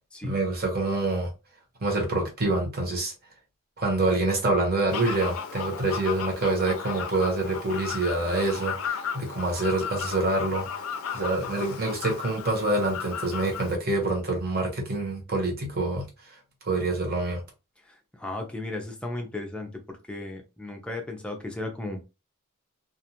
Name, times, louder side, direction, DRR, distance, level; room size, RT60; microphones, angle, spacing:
voice 1, 0.2-1.3 1.8-3.1 3.8-10.9 11.1-16.4 16.6-17.4, right 2 dB, 45° right, 1.0 m, -26 dB
Fowl, 4.9-13.8, left 7 dB, 75° left, 0.5 m, -35 dB
voice 2, 18.2-19.7 20.1-22.0, left 2 dB, 5° left, 0.5 m, -35 dB
2.4 x 2.4 x 2.8 m
head